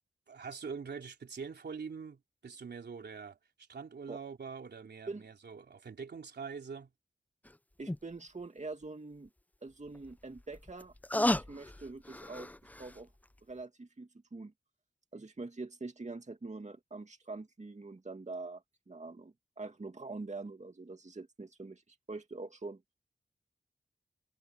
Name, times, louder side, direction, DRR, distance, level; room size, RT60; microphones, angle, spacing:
voice 1, 0.3-6.9, right 5 dB, 85° right, 3.5 m, -44 dB
sound 1, 7.4-7.5 7.9-8.0 9.9-13.0 13.4-13.5, left 1 dB, 10° left, 0.5 m, -34 dB
voice 2, 7.8-9.3 9.6-12.5 12.8-13.1 13.4-14.5 15.1-22.8, right 3 dB, 45° right, 2.3 m, -44 dB
cardioid pair, 40°, 17 cm